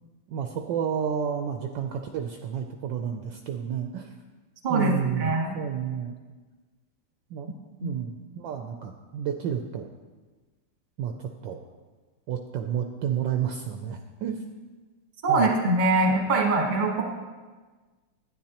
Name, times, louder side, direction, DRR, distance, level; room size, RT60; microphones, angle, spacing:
voice 1, 0.3-4.1 4.7-6.1 7.3-7.5 7.8-9.9 11.0-11.6 12.3-14.4 15.3-15.5, right 8 dB, 75° right, 4 dB, 1.1 m, -31 dB
voice 2, 5.2-5.5 7.8-7.9 15.2-17.0, right 2 dB, 30° right, 1 dB, 0.9 m, -23 dB
11.5 x 9.5 x 2.9 m, 1.4 s
omnidirectional pair, 2.3 m